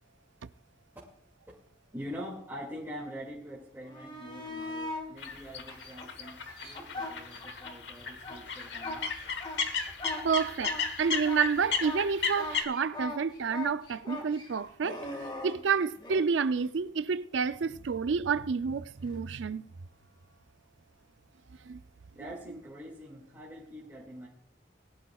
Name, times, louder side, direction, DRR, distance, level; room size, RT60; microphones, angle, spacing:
voice 1, 1.9-9.0 22.1-24.3, equal, 10° right, 2.2 m, -44 dB
sound 1, 3.8-5.1 5.7-7.7 8.1-16.3 19.0-19.1, left 2 dB, 25° left, 1.8 m, -40 dB
sound 2, 5.2-12.6, left 5 dB, 70° left, 1.4 m, -35 dB
voice 2, 10.2-19.6 21.6-21.8, right 5 dB, 90° right, 0.5 m, -29 dB
20.0 x 11.5 x 2.4 m
head